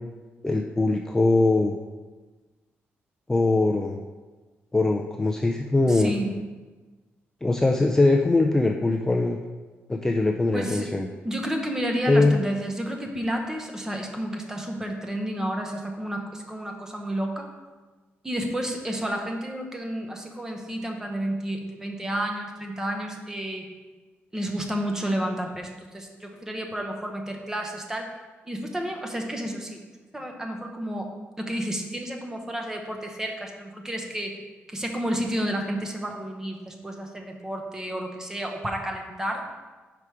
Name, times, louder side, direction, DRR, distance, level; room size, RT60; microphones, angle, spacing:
voice 1, 0.4-1.7 3.3-4.0 4.7-6.1 7.4-9.4 9.9-11.1 12.1-12.4, left 2 dB, 10° left, 1 dB, 0.4 m, -21 dB
voice 2, 5.9-6.3 10.5-10.9 11.2-17.5 18.2-23.7 24.3-28.1 28.5-29.8 30.1-31.1 31.4-34.4 34.7-39.4, right 1 dB, 10° right, 2 dB, 0.8 m, -31 dB
5.8 x 4.9 x 4.7 m, 1.3 s
cardioid pair, 130°, 4 cm